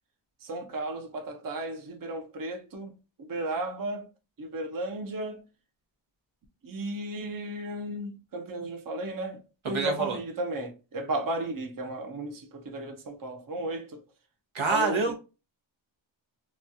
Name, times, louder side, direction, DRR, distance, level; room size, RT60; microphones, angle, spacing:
voice 1, 0.4-2.9 3.3-4.1 4.4-5.4 6.6-9.4 9.7-14.0 14.7-15.1, right 1 dB, 45° right, 0.6 m, -34 dB
voice 2, 9.6-10.2 14.5-15.1, right 4 dB, 85° right, 1.0 m, -27 dB
3.0 x 2.3 x 2.6 m
wide cardioid pair, 85°, 46 cm